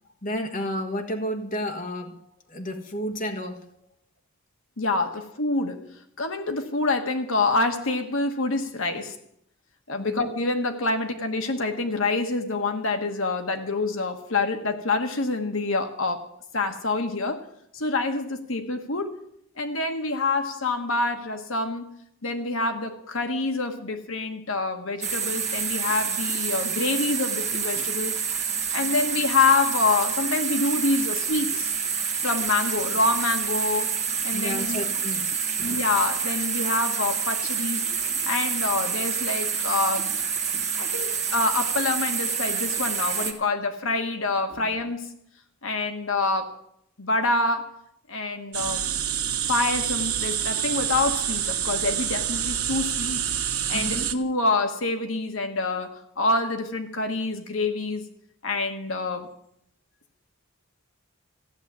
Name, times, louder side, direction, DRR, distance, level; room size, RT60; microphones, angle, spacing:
voice 1, 0.2-2.2 2.5-3.7 10.0-10.3 34.3-35.8 40.6-40.9 44.5-44.7 53.7-54.1, equal, 35° left, 1.4 m, -32 dB
voice 2, 4.8-5.9 6.2-9.2 9.9-17.4 17.7-19.2 19.6-21.9 22.2-28.2 28.7-31.7 32.2-33.9 34.2-34.8 35.6-37.9 38.3-40.2 40.8-45.1 45.6-46.6 47.0-47.8 48.1-48.9 49.5-53.2 53.7-58.1 58.4-59.3, left 3 dB, 65° left, 1.3 m, -26 dB
sound 1, 25.0-43.3, right 6 dB, 30° right, 1.8 m, -28 dB
sound 2, 48.5-54.1, right 9 dB, 80° right, 1.3 m, -27 dB
15.5 x 7.2 x 9.5 m
head